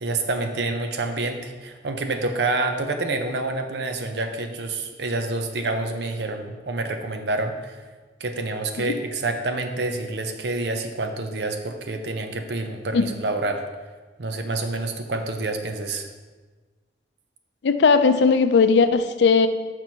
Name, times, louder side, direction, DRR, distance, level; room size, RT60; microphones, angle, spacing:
voice 1, 0.0-7.8 8.2-13.6 14.2-16.1, right 2 dB, 65° right, 6 dB, 0.7 m, -28 dB
voice 2, 17.6-19.5, left 5 dB, 70° left, 10 dB, 0.4 m, -18 dB
6.0 x 5.3 x 4.5 m, 1.3 s
head